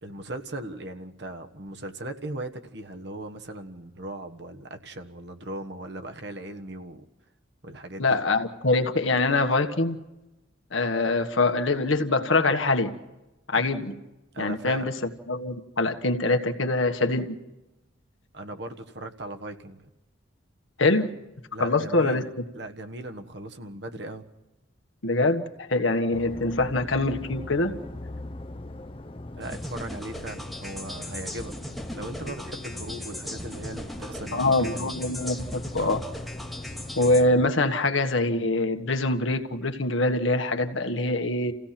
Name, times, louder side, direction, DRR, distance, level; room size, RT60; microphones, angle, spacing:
voice 1, 0.0-7.0 7.6-8.2 14.3-14.9 18.3-19.9 21.5-24.3 29.4-34.9, right 1 dB, 55° right, 5 dB, 1.4 m, -38 dB
voice 2, 8.0-10.0 10.7-12.9 13.5-13.9 14.4-14.9 15.3-17.3 20.8-21.1 21.6-22.2 25.0-27.7 34.3-36.0 37.0-41.5, left 2 dB, 75° left, 6 dB, 1.6 m, -24 dB
sound 1, 26.1-37.5, left 1 dB, 25° left, 0.6 m, -40 dB
sound 2, 29.4-37.2, left 1 dB, ahead, 1.2 m, -39 dB
29.5 x 16.5 x 5.9 m, 1.0 s
head